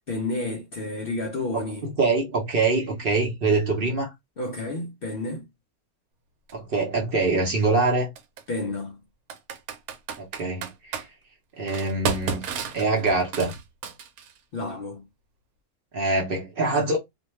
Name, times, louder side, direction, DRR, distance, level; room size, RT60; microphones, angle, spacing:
voice 1, 0.1-1.8 4.4-5.4 8.5-9.0 14.5-15.0, left 2 dB, 65° left, 0.5 m, -30 dB
voice 2, 1.5-4.1 6.5-8.1 10.2-11.0 11.6-12.4 12.7-13.5 15.9-17.0, right 3 dB, 50° right, 0.7 m, -24 dB
Computer keyboard, 6.5-6.6 8.2-8.4 9.3-11.1 11.7-14.4, right 6 dB, 80° right, 1.1 m, -32 dB
2.5 x 2.2 x 3.0 m
omnidirectional pair, 1.5 m